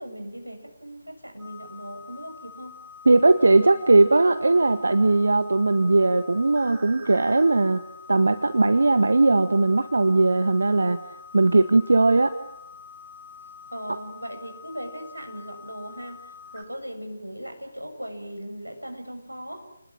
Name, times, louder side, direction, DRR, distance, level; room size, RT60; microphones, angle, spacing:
voice 1, 0.0-2.8 13.7-19.7, equal, 85° right, 5 dB, 8.0 m, -38 dB
sound 1, 1.4-16.6, left 5 dB, 5° right, 3.2 m, -46 dB
voice 2, 3.0-7.8 8.1-11.0 11.3-12.3, right 2 dB, 60° right, 9 dB, 1.6 m, -19 dB
29.5 x 20.5 x 9.0 m, 0.83 s
figure-of-eight pair, 155°, 0 cm